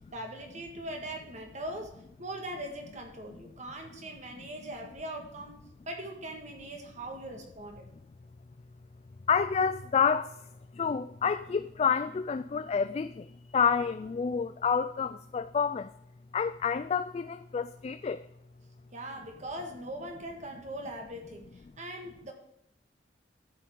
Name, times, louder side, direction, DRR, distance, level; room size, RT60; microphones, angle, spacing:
voice 1, 0.1-5.6 5.9-7.9 18.9-22.3, right 1 dB, 40° right, 1.7 m, -41 dB
voice 2, 9.3-10.4 10.7-15.9 16.3-18.3, left 6 dB, 35° left, 0.3 m, -29 dB
12.5 x 6.8 x 3.8 m
head